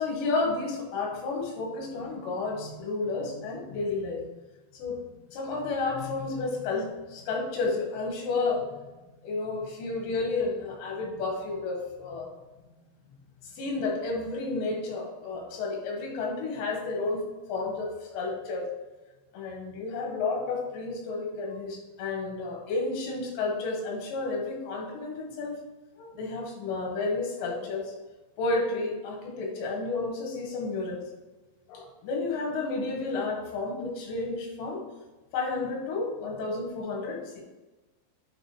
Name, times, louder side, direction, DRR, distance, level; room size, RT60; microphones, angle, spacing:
voice 1, 0.0-4.3 4.7-5.0 5.3-8.7 9.2-12.3 13.4-17.2 17.5-18.7 19.3-25.5 26.0-27.9 28.4-31.0 31.7-34.8 35.3-37.4, left 3 dB, 85° left, 0 dB, 3.8 m, -31 dB
8.9 x 5.1 x 3.2 m, 1.2 s
omnidirectional pair, 4.9 m